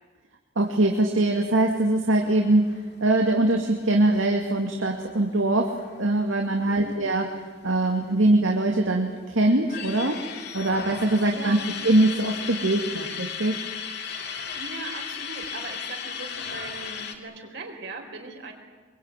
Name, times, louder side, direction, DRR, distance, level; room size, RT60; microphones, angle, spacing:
voice 1, 0.6-2.6 3.0-5.7 6.0-7.2 7.6-10.2 10.5-11.6 11.8-13.6, right 2 dB, 85° right, 2 dB, 2.5 m, -22 dB
sound 1, 2.2-7.3 7.6-7.7 8.0-8.9 9.4-17.1, left 7 dB, 55° left, 2.9 m, -36 dB
voice 2, 6.7-7.0 11.3-11.7 14.5-18.5, right 3 dB, 60° right, 2 dB, 4.3 m, -39 dB
25.0 x 24.0 x 9.2 m, 1.3 s
head